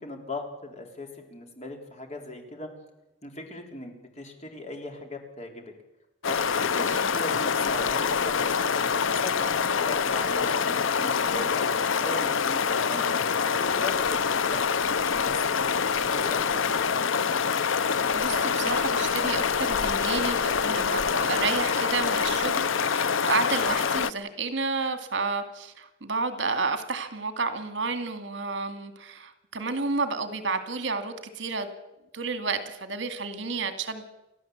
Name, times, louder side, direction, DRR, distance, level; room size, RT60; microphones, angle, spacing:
voice 1, 0.0-2.7 3.2-5.7 6.3-11.7 12.0-14.6 15.0-16.9, left 2 dB, 35° left, 3 dB, 3.7 m, -39 dB
sound 1, 6.2-24.1, left 6 dB, 85° left, 0.7 m, -25 dB
voice 2, 17.9-31.7 32.1-34.1, right 4 dB, 70° right, 9 dB, 2.2 m, -31 dB
30.0 x 13.0 x 8.0 m, 0.98 s
head